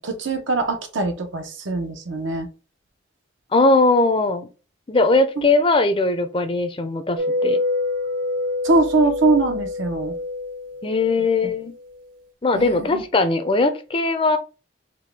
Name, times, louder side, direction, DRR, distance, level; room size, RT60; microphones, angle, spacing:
voice 1, 0.0-2.5 8.6-10.2 12.5-13.0, right 3 dB, 80° right, 5 dB, 0.8 m, -22 dB
voice 2, 3.5-4.5 4.9-7.6 10.8-11.7 12.4-14.4, left 2 dB, 30° left, 8 dB, 0.5 m, -19 dB
sound 1, 7.2-11.5, left 2 dB, 45° right, 0.3 m, -26 dB
4.5 x 2.2 x 3.3 m, 0.32 s
head